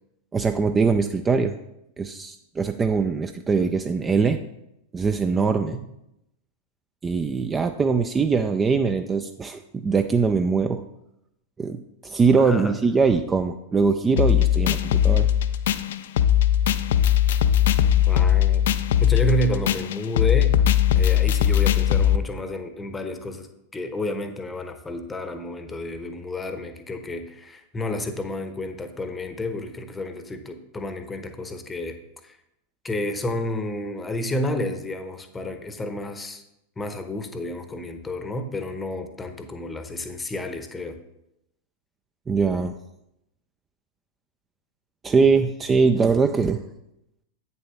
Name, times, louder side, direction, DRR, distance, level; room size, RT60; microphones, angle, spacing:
voice 1, 0.3-1.6 2.0-4.4 4.9-5.8 7.0-10.8 11.6-15.3 42.3-42.8 45.0-46.6, right 5 dB, 20° right, 8 dB, 0.4 m, -22 dB
voice 2, 12.3-12.8 18.1-18.6 19.0-20.6 20.9-32.0 32.2-32.4 32.8-36.4 36.8-41.0, left 1 dB, 15° left, 9 dB, 0.8 m, -30 dB
sound 1, 14.2-22.2, left 10 dB, 60° left, 0.4 m, -19 dB
8.6 x 6.8 x 3.5 m, 0.84 s
figure-of-eight pair, 90°, 0 cm